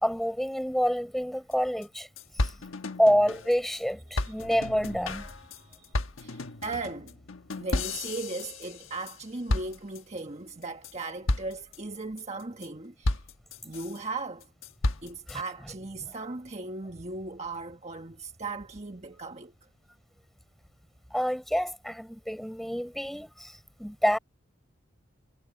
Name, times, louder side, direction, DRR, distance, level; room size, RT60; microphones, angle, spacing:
voice 1, 0.0-2.1 3.0-5.3 15.3-15.4 21.1-23.5 23.8-24.2, equal, ahead, 5.1 m, -27 dB
sound 1, 1.5-1.6 1.8-1.9 2.2-3.8 4.2-9.2 9.5-10.2 10.6-10.9 11.3-11.8 12.2-12.7 13.0-14.0 14.4-15.4, left 2 dB, 75° left, 1.3 m, -33 dB
voice 2, 5.5-5.9 6.2-7.1 7.6-13.2 13.6-14.5 15.0-19.5, right 3 dB, 35° right, 1.4 m, -37 dB
head